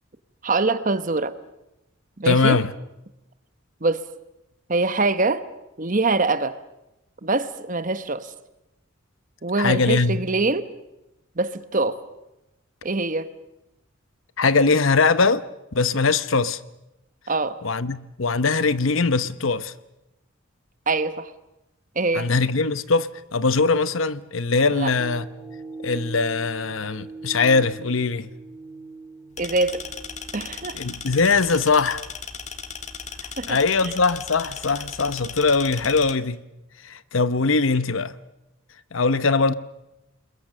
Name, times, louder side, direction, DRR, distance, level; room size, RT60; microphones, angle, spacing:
voice 1, 0.4-1.3 2.2-2.6 3.8-4.1 4.7-5.5 5.8-6.6 7.2-8.3 9.4-10.7 11.4-12.0 12.8-13.3 17.3-17.6 20.9-21.3 21.9-22.3 24.7-24.9 29.4-29.8 30.3-30.8 33.4-33.9, right 3 dB, 40° right, 1.1 m, -24 dB
voice 2, 2.2-2.7 9.6-10.2 14.4-15.4 15.7-16.6 17.6-19.7 22.1-25.3 25.8-28.3 30.7-32.0 33.5-36.4 36.8-38.1 38.9-39.5, left 4 dB, 70° left, 0.9 m, -21 dB
sound 1, 25.0-33.4 33.9-34.0, right 3 dB, 10° left, 2.6 m, -42 dB
sound 2, 29.4-36.1, left 6 dB, 35° left, 1.4 m, -37 dB
30.0 x 21.5 x 6.7 m
head